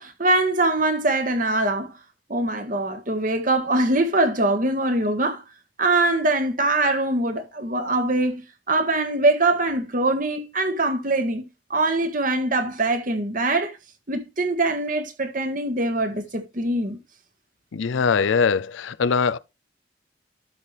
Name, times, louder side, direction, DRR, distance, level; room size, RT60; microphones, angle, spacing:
voice 1, 0.0-1.9 2.3-5.4 5.8-11.4 11.7-13.8 14.1-17.0, right 2 dB, 45° right, 1.5 m, -23 dB
voice 2, 17.7-19.4, left 5 dB, 75° left, 0.5 m, -22 dB
12.5 x 5.8 x 3.4 m
head